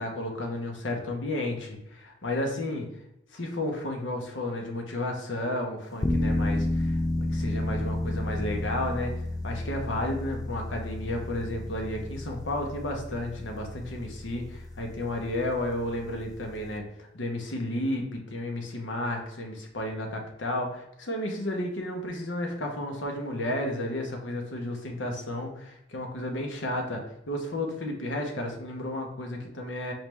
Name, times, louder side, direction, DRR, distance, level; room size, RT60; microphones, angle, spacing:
voice 1, 0.0-2.9 3.3-9.1 9.4-27.0 27.3-29.9, left 1 dB, 85° left, 2 dB, 1.0 m, -32 dB
sound 1, 6.0-16.8, left 1 dB, 20° left, 0.3 m, -32 dB
4.5 x 3.2 x 3.4 m, 0.81 s
head